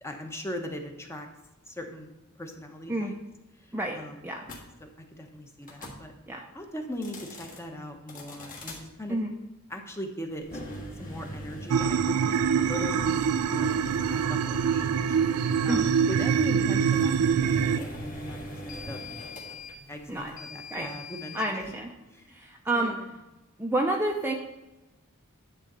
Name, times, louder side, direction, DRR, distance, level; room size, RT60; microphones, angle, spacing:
voice 1, 0.0-1.3 1.7-3.2 3.9-4.3 4.8-4.9 5.2-6.1 6.5-9.2 9.7-10.5 11.0-13.2 13.5-13.8 14.1-15.2 15.6-19.0 19.9-21.7 22.1-22.4 22.7-23.1, equal, 10° left, 3 dB, 1.0 m, -39 dB
voice 2, 3.7-4.4 6.3-6.4 9.1-9.3 15.7-15.8 20.1-20.3 20.7-20.9 21.3-21.9 22.3-23.0 23.6-24.3, right 1 dB, 10° right, 1 dB, 0.6 m, -29 dB
sound 1, 4.4-4.6 5.6-6.0 6.9-7.6 8.1-8.8 10.4-21.4, equal, 40° left, 1.7 m, -41 dB
sound 2, 11.7-17.8, right 7 dB, 80° right, 0.4 m, -25 dB
10.5 x 3.8 x 6.7 m, 1.0 s
head